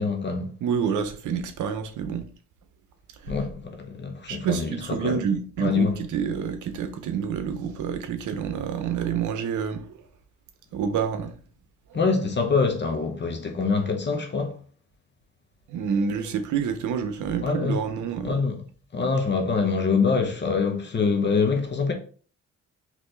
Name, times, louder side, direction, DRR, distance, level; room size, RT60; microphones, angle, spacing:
voice 1, 0.0-0.5 3.3-5.3 5.6-6.0 11.9-14.6 17.4-17.8 18.2-18.6 18.9-21.9, left 4 dB, 35° left, 0.9 m, -25 dB
voice 2, 0.6-2.3 4.3-9.9 10.7-11.3 15.7-18.4, right 7 dB, 75° right, 0.8 m, -28 dB
4.2 x 3.2 x 3.2 m
cardioid pair, 90°, 30 cm